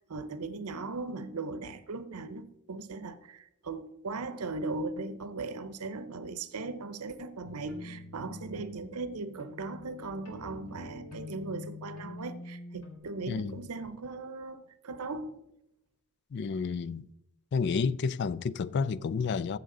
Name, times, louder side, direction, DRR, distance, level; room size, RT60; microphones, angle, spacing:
voice 1, 0.0-15.4, right 3 dB, 90° right, 0.7 m, -38 dB
sound 1, 7.4-13.0, left 2 dB, 85° left, 3.4 m, -46 dB
voice 2, 13.3-13.6 16.3-17.1 17.5-19.6, left 5 dB, 50° left, 0.3 m, -30 dB
14.5 x 7.1 x 3.8 m
head